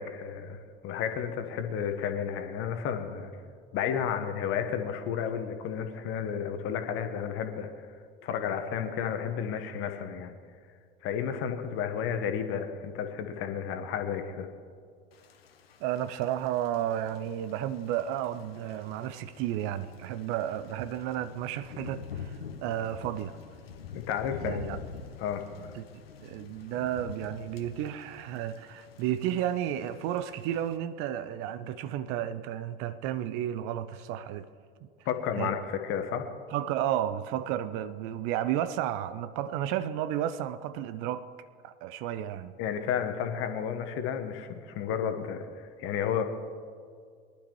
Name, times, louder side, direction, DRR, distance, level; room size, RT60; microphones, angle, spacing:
voice 1, 0.0-3.3 3.7-7.9 8.2-10.4 11.0-14.5 23.9-24.8 25.2-25.7 35.0-36.3 42.6-46.2, left 8 dB, 45° left, 1.3 m, -32 dB
Thunder / Rain, 15.1-30.8, left 7 dB, 75° left, 1.0 m, -46 dB
voice 2, 15.8-23.4 24.4-24.8 25.7-25.8 26.2-34.5 35.4-35.5 36.5-41.3 41.6-42.5, right 11 dB, 45° right, 0.6 m, -32 dB
22.5 x 11.5 x 3.2 m
figure-of-eight pair, 75°, 31 cm